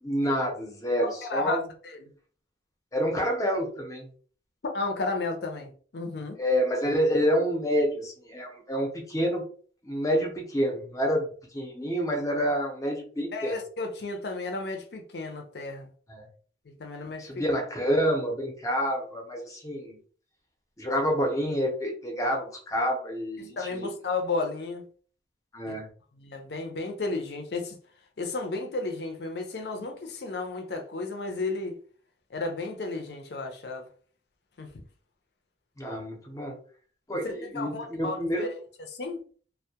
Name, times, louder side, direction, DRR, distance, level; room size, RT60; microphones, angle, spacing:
voice 1, 0.0-1.7 2.9-4.1 6.4-9.4 9.8-11.3 11.5-13.6 16.1-16.3 17.2-20.0 20.8-23.9 25.5-25.9 35.8-36.5 37.1-38.5, equal, 20° left, 1 dB, 0.6 m, -28 dB
voice 2, 1.0-1.6 1.8-2.1 4.6-6.4 13.3-15.9 16.7-17.3 23.6-24.8 25.7-25.8 26.2-27.8 28.2-31.8 32.3-33.9 34.6-34.7 37.5-38.5 38.9-39.2, left 3 dB, 65° left, 4 dB, 0.5 m, -33 dB
2.2 x 2.1 x 2.7 m, 0.44 s
head